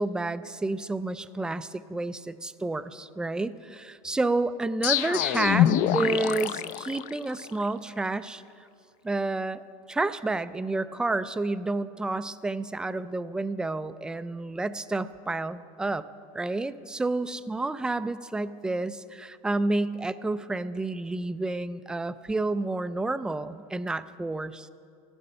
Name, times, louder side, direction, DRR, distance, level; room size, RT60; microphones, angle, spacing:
voice 1, 0.0-8.4 9.0-9.6 9.9-16.1 16.3-24.7, right 2 dB, 5° right, 13 dB, 0.3 m, -30 dB
sound 1, 4.8-7.6, left 11 dB, 45° left, 0.5 m, -25 dB
14.5 x 12.0 x 5.5 m, 2.6 s
supercardioid pair, 130°, 18 cm